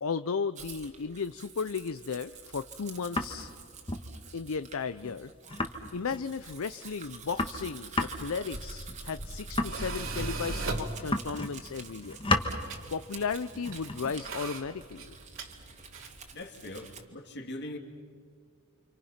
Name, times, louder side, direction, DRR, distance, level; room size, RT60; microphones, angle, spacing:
voice 1, 0.0-3.5 4.3-5.3 5.9-12.2 12.9-15.1, left 5 dB, 70° left, 13 dB, 0.6 m, -35 dB
Domestic sounds home sounds, 0.6-17.1, right 6 dB, 35° right, 2.0 m, -49 dB
sound 1, 2.8-3.5 3.9-4.1 4.4-4.5 4.7-4.8 5.0-5.2 5.5-6.3 6.8-6.9 7.0-10.6 11.0-11.7 11.9-12.6 13.5-15.4, left 2 dB, 25° left, 1.5 m, -34 dB
Tools, 8.3-16.3, right 2 dB, 65° right, 2.5 m, -39 dB
voice 2, 16.3-17.8, left 1 dB, 50° left, 3 dB, 2.8 m, -41 dB
30.0 x 26.5 x 5.8 m, 2.1 s
head